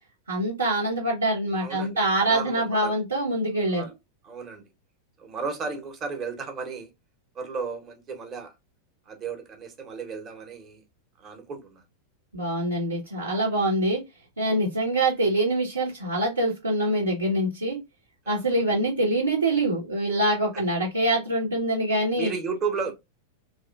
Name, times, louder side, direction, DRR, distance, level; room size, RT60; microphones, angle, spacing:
voice 1, 0.3-3.8 12.3-14.0 14.4-17.8 18.3-22.3, right 1 dB, 80° right, 1.2 m, -25 dB
voice 2, 1.6-2.9 3.7-3.9 4.2-4.6 5.2-6.9 7.3-8.5 9.1-10.8 11.2-11.8 18.5-18.6 20.5-20.6 22.2-22.9, right 5 dB, 30° right, 1.1 m, -34 dB
3.5 x 2.5 x 2.4 m
figure-of-eight pair, 90°, 0 cm